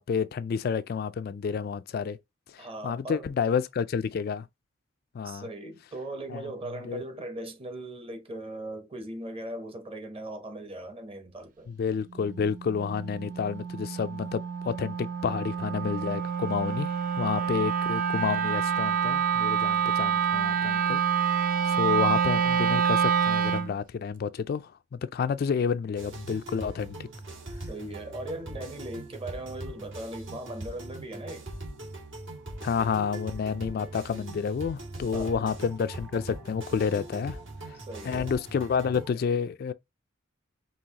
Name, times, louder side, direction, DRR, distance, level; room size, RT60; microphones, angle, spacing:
voice 1, 0.0-2.2 2.5-4.5 5.1-5.5 6.3-6.4 6.8-7.0 11.7-21.0 21.3-27.1 32.6-37.4 37.6-37.8 38.0-39.7, left 6 dB, 50° left, 0.3 m, -30 dB
voice 2, 2.6-3.3 5.2-11.7 17.4-17.5 27.7-31.5 35.1-35.3 37.7-38.3, right 1 dB, 30° right, 0.9 m, -39 dB
Wind instrument woodwind instrument, 12.2-23.7, right 7 dB, 45° right, 0.5 m, -27 dB
sound 1, 26.0-39.1, right 2 dB, 70° right, 2.0 m, -41 dB
5.4 x 2.8 x 2.8 m
head